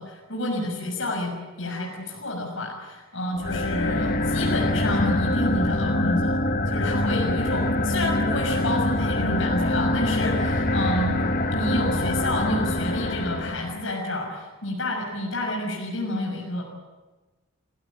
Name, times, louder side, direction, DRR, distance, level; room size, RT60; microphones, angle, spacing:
voice 1, 0.0-6.4 6.7-11.2 11.5-16.6, left 1 dB, 70° left, 0 dB, 6.3 m, -29 dB
sound 1, 3.3-13.8, left 1 dB, 45° left, 1.1 m, -24 dB
29.0 x 18.0 x 8.6 m, 1.2 s
head